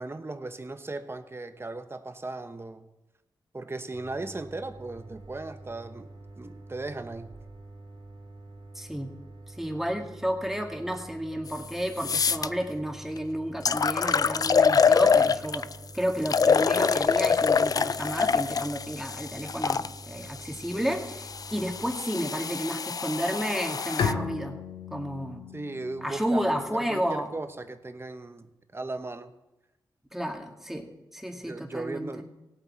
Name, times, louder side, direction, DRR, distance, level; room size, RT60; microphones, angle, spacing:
voice 1, 0.0-2.9 3.5-7.3 20.3-20.4 25.5-29.3 31.5-32.2, right 2 dB, 30° right, 9 dB, 1.0 m, -37 dB
sound 1, 3.9-21.9, right 2 dB, 70° right, 2.0 m, -47 dB
voice 2, 8.7-9.1 9.5-15.7 15.9-24.6 24.9-25.4 26.0-27.3 30.1-30.9 31.1-32.1, equal, 5° right, 3 dB, 2.2 m, -31 dB
sound 2, 11.5-11.6 12.0-12.5 13.2-13.3 13.6-15.7 16.2-19.9 20.7-24.1, left 6 dB, 45° left, 0.4 m, -25 dB
Bowed string instrument, 24.0-27.5, left 6 dB, 75° left, 1.0 m, -35 dB
17.0 x 8.1 x 4.4 m, 0.98 s
cardioid pair, 45°, 9 cm